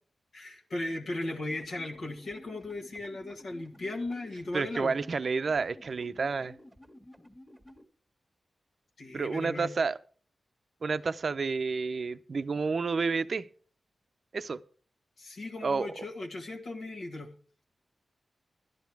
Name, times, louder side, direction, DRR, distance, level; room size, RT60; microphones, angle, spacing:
voice 1, 0.3-5.0 9.0-9.7 15.2-17.3, left 2 dB, 75° left, 1.6 m, -37 dB
sound 1, 1.5-7.8, left 1 dB, ahead, 1.5 m, -53 dB
voice 2, 4.5-6.5 9.1-10.0 10.8-13.5 14.3-14.6 15.6-15.9, right 4 dB, 60° right, 0.5 m, -30 dB
12.0 x 10.5 x 4.7 m
wide cardioid pair, 80°, 0 cm